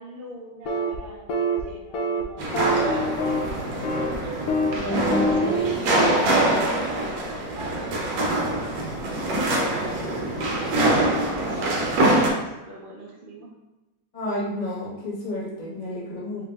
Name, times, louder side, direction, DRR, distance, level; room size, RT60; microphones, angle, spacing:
voice 1, 0.0-3.7 4.8-10.2 11.3-13.5, right 1 dB, 60° right, -4 dB, 0.5 m, -41 dB
sound 1, 0.6-1.0 1.3-1.6 1.9-2.2 2.5-3.5 3.8-4.1 4.5-4.8 5.1-5.7, equal, 75° left, 0.8 m, -25 dB
sound 2, 2.4-12.3, right 1 dB, 80° right, 1.5 m, -24 dB
voice 2, 4.7-5.5 14.1-16.5, left 1 dB, 30° left, -5 dB, 0.8 m, -31 dB
4.8 x 2.0 x 3.3 m, 1.0 s
omnidirectional pair, 2.1 m